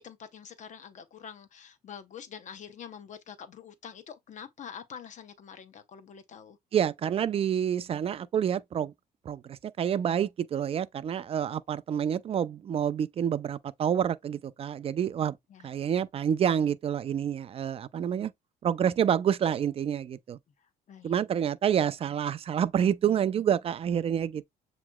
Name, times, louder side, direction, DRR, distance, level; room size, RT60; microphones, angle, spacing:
voice 1, 0.0-6.6 15.5-15.7 20.9-21.2, left 8 dB, 45° left, 0.7 m, -46 dB
voice 2, 6.7-8.9 9.3-15.4 15.6-18.3 18.6-20.4 21.0-24.4, right 9 dB, 35° right, 0.4 m, -28 dB
7.1 x 3.0 x 2.2 m
cardioid pair, 110°, 17 cm